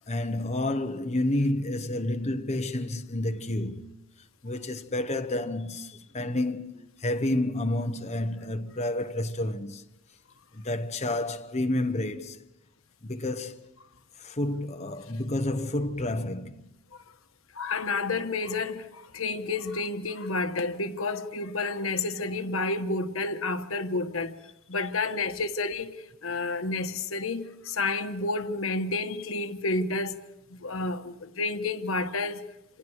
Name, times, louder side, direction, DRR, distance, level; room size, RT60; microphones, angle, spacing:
voice 1, 0.1-4.0 4.4-9.8 10.5-12.4 13.0-13.7 14.2-16.6, left 1 dB, 35° left, 1.2 m, -30 dB
voice 2, 17.5-24.4 24.7-30.2 30.5-32.4, left 3 dB, 80° left, 1.3 m, -30 dB
28.0 x 27.0 x 4.8 m
head